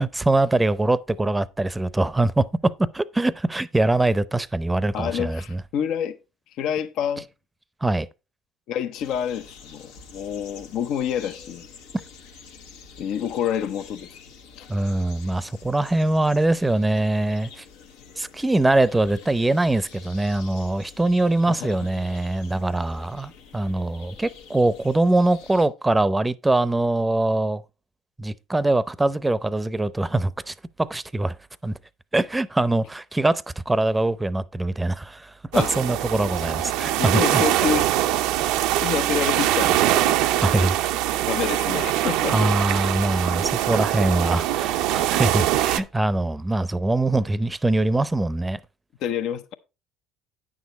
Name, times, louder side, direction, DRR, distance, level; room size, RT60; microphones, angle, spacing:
voice 1, 0.0-5.6 7.8-8.1 14.7-17.6 18.2-27.6 28.2-31.4 31.6-31.7 32.1-37.4 40.4-40.8 42.3-48.6, right 2 dB, 15° right, 0.6 m, -23 dB
voice 2, 4.9-6.2 6.6-7.2 8.7-11.7 13.0-14.2 14.6-14.7 21.5-21.8 35.5-35.8 37.0-37.9 38.8-40.2 41.3-42.4 49.0-49.5, left 9 dB, 65° left, 0.7 m, -28 dB
sound 1, 8.9-25.7, left 5 dB, 80° left, 1.1 m, -47 dB
sound 2, 35.5-45.8, right 13 dB, 70° right, 0.5 m, -23 dB
9.4 x 6.3 x 4.1 m
hypercardioid pair, 70°, 0 cm